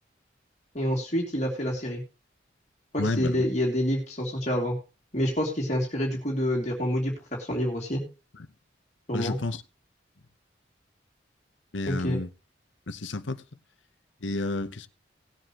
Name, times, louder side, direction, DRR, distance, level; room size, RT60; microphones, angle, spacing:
voice 1, 0.7-2.0 2.9-4.8 5.1-8.0 9.1-9.4 11.9-12.2, equal, 40° left, 2.8 m, -27 dB
voice 2, 3.0-3.5 9.1-9.6 11.7-12.3 12.9-13.4 14.2-14.9, left 2 dB, 90° left, 1.0 m, -30 dB
19.0 x 7.6 x 3.0 m
head